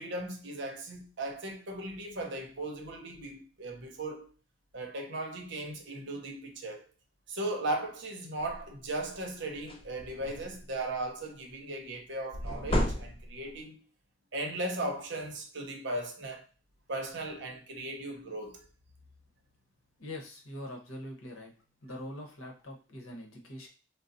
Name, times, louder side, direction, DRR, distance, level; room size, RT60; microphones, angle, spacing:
voice 1, 0.0-4.3 4.7-6.9 7.3-13.8 14.3-16.5 16.9-18.6, right 2 dB, 55° right, 0.7 m, -37 dB
sound 1, 8.4-8.7 9.1-9.3 9.5-10.7 12.3-13.6, left 1 dB, 25° left, 0.4 m, -32 dB
voice 2, 20.0-21.5 21.8-23.7, left 1 dB, 80° left, 0.9 m, -43 dB
3.9 x 2.0 x 2.5 m
head